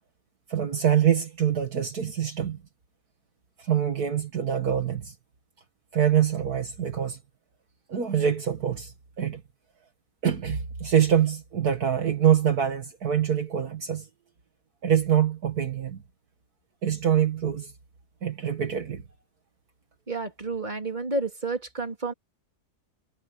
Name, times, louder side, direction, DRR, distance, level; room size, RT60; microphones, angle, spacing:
voice 1, 0.5-2.6 3.6-5.1 5.9-7.2 7.9-9.4 10.2-14.1 14.8-16.0 16.8-17.7 18.2-19.0, right 9 dB, 65° right, 2.1 m, -25 dB
voice 2, 20.1-22.1, right 3 dB, 25° right, 3.6 m, -30 dB
omnidirectional pair, 1.8 m